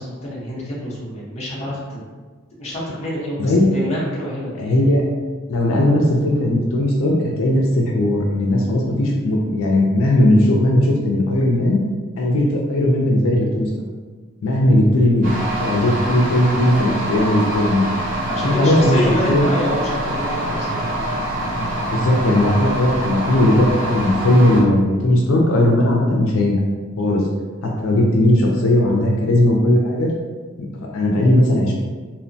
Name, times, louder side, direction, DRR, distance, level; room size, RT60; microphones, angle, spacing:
voice 1, 0.0-2.0 2.6-4.7 18.2-21.1, equal, 30° left, -6 dB, 0.7 m, -27 dB
voice 2, 4.6-5.0 5.5-11.8 12.2-13.7 14.4-17.9 18.4-19.5 21.9-26.6 27.0-27.2 27.6-30.1 30.6-31.7, left 1 dB, 75° left, -1 dB, 0.4 m, -17 dB
sound 1, 15.2-24.6, right 1 dB, 40° right, 0.6 m, -25 dB
2.8 x 2.0 x 2.6 m, 1.4 s
head